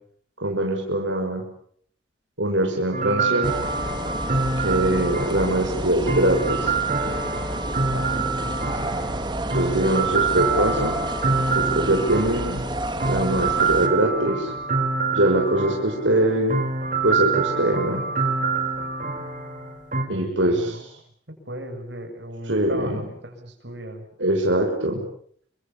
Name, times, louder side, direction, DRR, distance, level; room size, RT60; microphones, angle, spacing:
voice 1, 0.4-1.4 2.4-3.5 4.6-6.7 9.5-11.0 11.5-12.6 13.1-14.5 15.1-16.5 17.0-18.0 20.1-20.9 22.5-23.0 24.2-25.0, right 1 dB, 85° right, 2 dB, 6.0 m, -22 dB
sound 1, 2.9-20.0, right 4 dB, 45° right, 4.9 m, -26 dB
sound 2, 3.4-13.9, right 1 dB, 25° right, 3.3 m, -30 dB
voice 2, 7.9-9.2 20.1-20.8 21.5-24.0, right 1 dB, 70° right, 5 dB, 7.5 m, -37 dB
30.0 x 25.5 x 7.2 m, 0.62 s
head